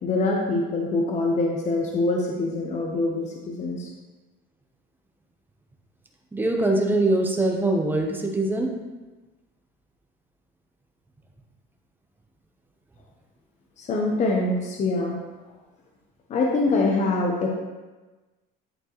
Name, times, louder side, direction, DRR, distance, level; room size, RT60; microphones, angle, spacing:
voice 1, 0.0-3.9 13.8-15.2 16.3-17.5, left 2 dB, 35° left, 0 dB, 0.9 m, -24 dB
voice 2, 6.3-8.7, right 2 dB, 10° right, 1 dB, 0.8 m, -23 dB
11.0 x 4.4 x 3.0 m, 1.2 s
cardioid pair, 135°, 21 cm